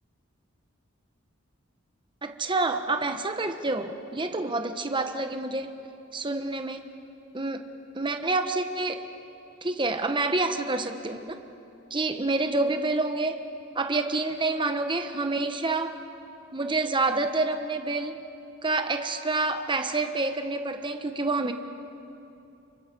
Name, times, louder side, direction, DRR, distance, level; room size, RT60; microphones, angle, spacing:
voice 1, 2.2-5.8 6.1-6.8 7.3-7.6 7.9-9.0 9.6-11.4 11.9-13.4 13.7-15.9 16.5-18.2 18.6-21.5, right 3 dB, 25° right, 7 dB, 1.2 m, -28 dB
29.5 x 23.5 x 5.4 m, 2.8 s
head